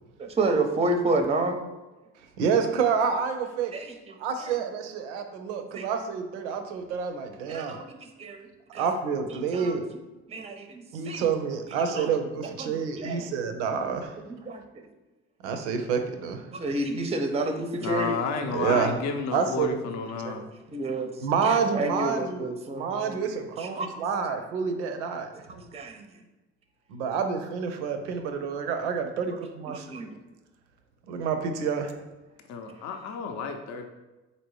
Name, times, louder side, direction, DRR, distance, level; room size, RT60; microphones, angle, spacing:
voice 1, 0.2-1.6 3.7-4.6 5.7-5.9 7.5-8.8 9.5-9.8 10.3-11.3 11.9-12.1 12.6-13.3 14.2-14.9 16.5-18.2 20.7-21.1 21.4-23.2 23.6-23.9 25.5-26.1 29.7-30.1, right 2 dB, 20° right, 6 dB, 0.5 m, -30 dB
voice 2, 2.4-3.7 4.2-7.8 8.7-9.8 10.9-14.2 15.4-16.5 18.5-18.9 19.3-19.8 20.2-20.3 21.2-22.5 22.7-25.3 26.9-30.0 31.1-31.9, right 6 dB, 85° right, 6 dB, 0.5 m, -28 dB
voice 3, 17.8-20.5 32.5-33.9, left 5 dB, 55° left, 5 dB, 0.5 m, -31 dB
4.1 x 2.6 x 3.1 m, 1.1 s
hypercardioid pair, 55°, 34 cm